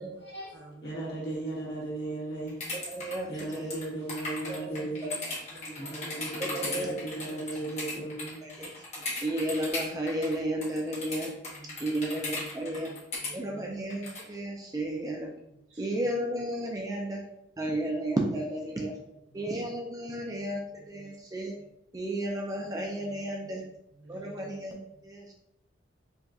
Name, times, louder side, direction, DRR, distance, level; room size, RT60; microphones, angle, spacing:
voice 1, 0.0-2.6 3.3-5.1 5.8-8.4, right 2 dB, 60° left, 1.5 m, -36 dB
voice 2, 0.5-1.4 5.5-6.2 8.3-8.6 8.9-9.1 11.2-14.0 15.5-16.1 19.3-19.7 20.3-20.4 20.9-21.2 21.5-21.7 22.6-22.8 23.1-24.6 24.9-25.0, right 2 dB, 65° right, 0.6 m, -52 dB
sound 1, 2.5-10.3 10.6-13.3 13.9-14.3, left 2 dB, 35° left, 1.1 m, -36 dB
voice 3, 2.9-3.7 4.5-4.7 5.0-5.1 5.5-5.7 6.4-7.0 8.6-8.7 9.2-11.3 11.8-12.9 13.3-15.3 15.8-17.2 17.6-19.0 19.3-21.5 21.9-23.6 24.1-25.3, right 1 dB, 20° right, 0.3 m, -33 dB
4.6 x 2.2 x 2.6 m
head